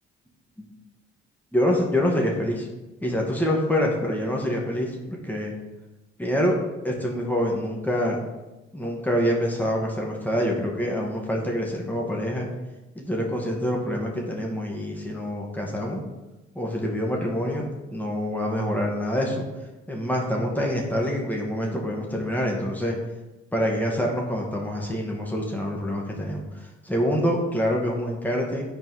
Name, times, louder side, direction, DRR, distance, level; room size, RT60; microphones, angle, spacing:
voice 1, 1.5-2.7 3.0-5.5 6.2-6.6 6.8-8.2 8.7-12.5 13.0-16.0 16.6-19.4 19.9-23.0 23.5-26.4 26.8-28.6, equal, 5° left, -1 dB, 1.9 m, -26 dB
11.0 x 4.4 x 3.8 m, 1.0 s
figure-of-eight pair, 40°, 34 cm